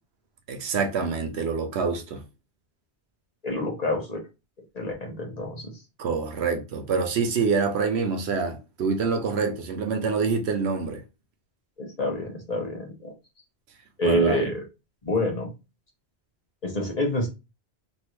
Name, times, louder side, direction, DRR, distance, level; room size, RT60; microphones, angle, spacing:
voice 1, 0.5-2.2 6.0-11.0 14.0-14.5, right 5 dB, 75° right, 0.9 m, -26 dB
voice 2, 3.4-4.2 4.7-5.7 11.8-13.1 14.0-14.6 15.0-15.5 16.6-17.3, equal, 40° left, 1.1 m, -27 dB
3.1 x 2.5 x 3.0 m
omnidirectional pair, 1.1 m